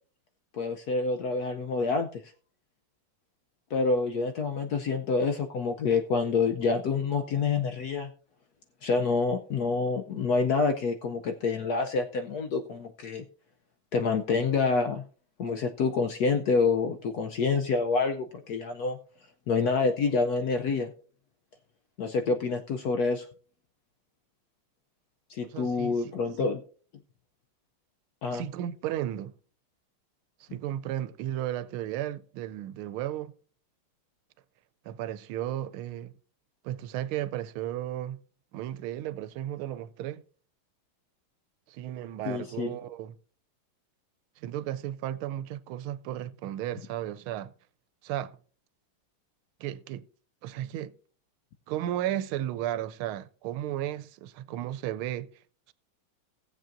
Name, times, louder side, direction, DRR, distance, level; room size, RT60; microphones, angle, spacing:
voice 1, 0.5-2.3 3.7-8.1 8.8-13.2 13.9-15.0 15.4-19.0 19.5-20.9 22.0-23.3 25.3-26.6 28.2-28.4 42.2-42.7, left 4 dB, 70° left, 0.9 m, -27 dB
voice 2, 25.5-26.0 26.4-26.5 28.3-29.3 30.4-33.3 34.8-36.1 36.6-38.2 38.5-40.2 41.7-43.2 44.4-47.5 48.0-48.4 49.6-50.1 50.4-50.9 51.7-55.3, right 12 dB, 85° right, 1.4 m, -34 dB
18.0 x 7.5 x 2.5 m
omnidirectional pair, 2.3 m